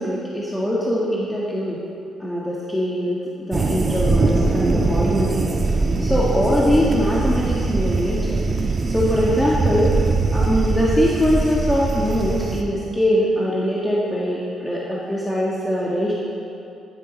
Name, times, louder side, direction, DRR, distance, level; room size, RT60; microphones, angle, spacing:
voice 1, 0.0-1.8 2.2-5.4 6.0-8.5 8.9-9.9 10.3-16.1, equal, 10° left, -6 dB, 2.0 m, -22 dB
sound 1, 3.5-12.6, right 3 dB, 35° right, 1.3 m, -21 dB
11.5 x 11.5 x 5.3 m, 2.7 s
cardioid pair, 90°, 0 cm